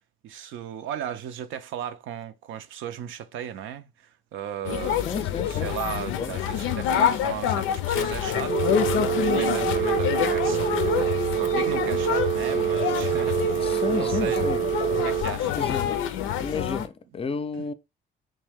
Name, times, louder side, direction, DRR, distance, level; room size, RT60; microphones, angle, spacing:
voice 1, 0.2-5.1 5.5-14.5 15.0-15.7 17.6-17.7, right 9 dB, 80° right, 0.5 m, -36 dB
sound 1, 4.6-16.9, left 10 dB, 90° left, 0.4 m, -27 dB
voice 2, 5.0-6.4 13.6-14.6 15.5-16.1 16.4-17.7, left 5 dB, 30° left, 0.4 m, -32 dB
Telephone, 8.5-15.2, right 10 dB, 25° right, 0.5 m, -26 dB
3.2 x 2.7 x 3.4 m
cardioid pair, 90°, 20 cm